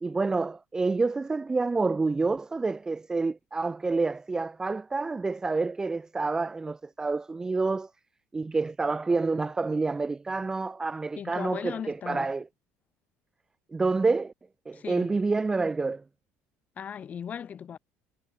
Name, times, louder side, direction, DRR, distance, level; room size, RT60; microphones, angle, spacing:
voice 1, 0.0-7.9 8.3-12.4 13.7-14.3 14.7-16.0, right 3 dB, 15° right, 0.9 m, -28 dB
voice 2, 11.2-12.3 14.7-15.1 16.8-17.8, left 8 dB, 30° left, 5.5 m, -37 dB
cardioid pair, 160°, 5 cm